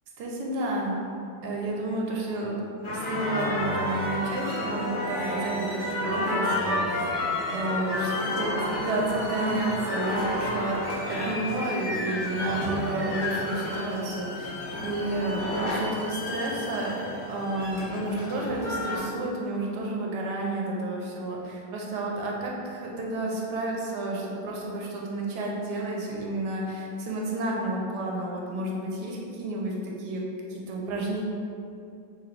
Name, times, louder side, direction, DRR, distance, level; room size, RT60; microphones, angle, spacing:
voice 1, 0.2-1.0 1.4-7.1 7.5-14.6 14.8-17.0 17.3-30.2 30.5-31.2, right 2 dB, 70° right, -2 dB, 1.1 m, -31 dB
sound 1, 2.8-19.0, left 1 dB, 40° left, 0.8 m, -31 dB
3.0 x 2.6 x 4.4 m, 2.5 s
omnidirectional pair, 2.1 m